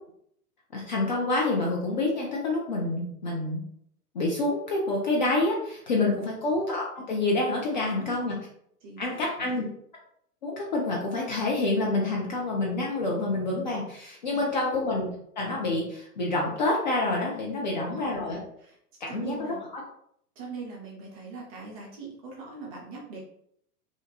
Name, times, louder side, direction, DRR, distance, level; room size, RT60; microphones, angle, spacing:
voice 1, 0.7-3.6 4.1-8.4 9.0-9.6 10.4-15.1 15.4-18.4 19.0-19.5, left 2 dB, 35° left, -2 dB, 0.4 m, -27 dB
voice 2, 7.7-8.2 8.8-9.6 14.3-14.6 17.6-18.2 18.6-18.8 19.1-19.6 20.4-23.2, right 4 dB, 25° right, -2 dB, 0.5 m, -41 dB
2.5 x 2.1 x 2.8 m, 0.70 s
figure-of-eight pair, 100°, 48 cm